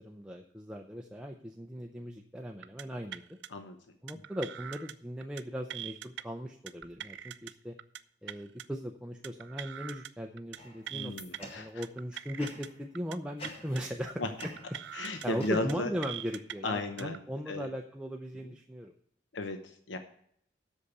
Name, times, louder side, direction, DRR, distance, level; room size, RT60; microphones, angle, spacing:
voice 1, 0.0-3.4 4.0-7.8 8.2-11.1 11.4-14.3 15.2-18.9, equal, 5° right, 1 dB, 0.6 m, -38 dB
sound 1, 2.6-2.8 3.1-3.5 4.1-4.9 5.2-5.4 5.7-6.2 6.7-7.5 7.8-8.0 8.3-8.6 9.2-10.1 10.4-10.6 10.9-11.4 11.8-12.7 12.9-13.2 13.4-13.8 14.4-15.3 15.5-15.7 16.0-16.5 17.0-17.2, right 10 dB, 80° right, 0.5 m, -42 dB
sound 2, 10.6-11.9 12.4-12.8 13.4-14.0 14.4-16.0, equal, 30° left, 2.0 m, -48 dB
voice 2, 10.9-11.7 14.2-14.3 14.9-15.9 16.6-17.2 17.5-17.7 18.4-18.5 19.3-20.0, left 2 dB, 90° left, 7 dB, 0.9 m, -34 dB
8.2 x 6.6 x 8.2 m, 0.67 s
head